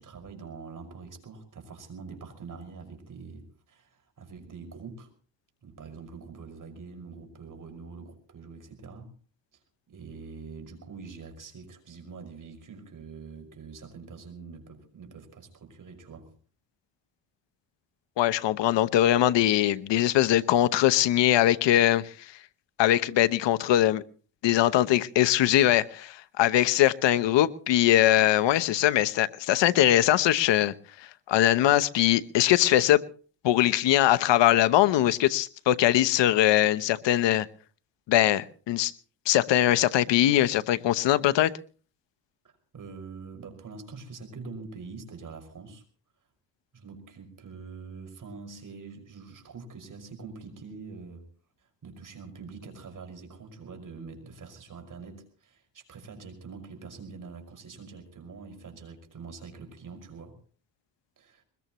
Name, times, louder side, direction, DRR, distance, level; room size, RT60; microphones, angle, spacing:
voice 1, 0.0-5.1 5.6-9.1 9.5-9.6 9.9-16.3 42.4-45.8 46.7-51.3 51.6-60.3 61.2-61.4, right 4 dB, 45° right, 5 dB, 5.7 m, -44 dB
voice 2, 18.2-22.1 22.8-24.0 24.4-30.7 31.3-33.0 33.4-37.5 38.1-38.9 39.3-41.5, left 13 dB, 80° left, 13 dB, 0.9 m, -22 dB
22.5 x 21.0 x 3.1 m, 0.41 s
cardioid pair, 110°, 43 cm